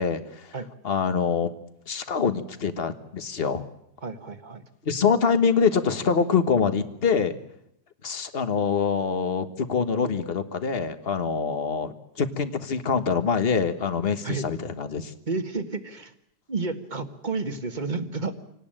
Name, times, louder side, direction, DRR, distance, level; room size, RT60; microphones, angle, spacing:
voice 1, 0.0-0.5 0.8-1.5 1.9-3.7 4.8-7.4 8.0-15.1, left 6 dB, 40° left, 10 dB, 1.5 m, -25 dB
voice 2, 4.0-4.7 14.2-14.5 15.3-16.1 16.5-18.3, right 3 dB, 30° right, 8 dB, 1.6 m, -31 dB
26.5 x 18.5 x 9.0 m, 0.78 s
omnidirectional pair, 1.7 m